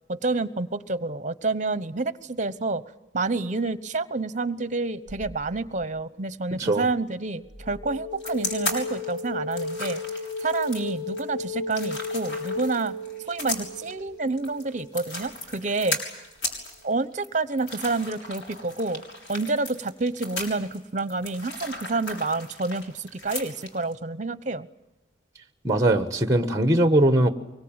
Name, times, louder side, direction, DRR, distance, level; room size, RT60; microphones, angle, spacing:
voice 1, 0.1-2.8 3.1-10.0 10.4-12.9 13.3-16.0 16.8-19.0 19.3-24.7, right 3 dB, 40° right, 14 dB, 1.0 m, -28 dB
sound 1, 5.1-5.8 7.5-15.2, left 3 dB, 60° left, 4.6 m, -34 dB
sound 2, 8.2-23.9, left 1 dB, 85° left, 6.6 m, -36 dB
voice 2, 25.6-27.3, right 1 dB, 15° right, 9 dB, 1.3 m, -20 dB
24.5 x 23.0 x 8.9 m, 1.0 s
head